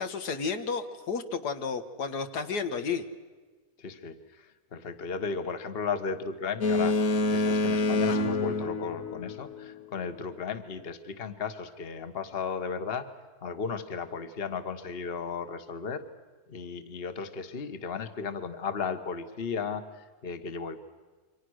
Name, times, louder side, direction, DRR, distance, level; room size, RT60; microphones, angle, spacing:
voice 1, 0.0-3.0, left 5 dB, 80° left, 8 dB, 1.9 m, -32 dB
voice 2, 3.8-7.0 7.3-13.1 13.4-16.0 16.5-20.8, left 5 dB, 40° left, 9 dB, 1.5 m, -35 dB
Boat Water vehicle, 6.6-9.7, left 2 dB, 60° left, 1.5 m, -27 dB
28.5 x 24.5 x 6.4 m, 1.4 s
omnidirectional pair, 1.7 m